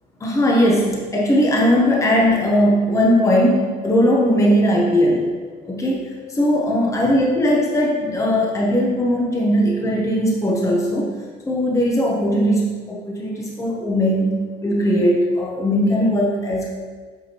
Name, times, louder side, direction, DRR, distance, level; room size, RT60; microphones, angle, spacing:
voice 1, 0.2-5.3 5.6-11.1 11.5-14.3 14.6-16.8, equal, 20° left, -2 dB, 0.9 m, -19 dB
8.1 x 4.3 x 2.9 m, 1.5 s
cardioid pair, 110°, 17 cm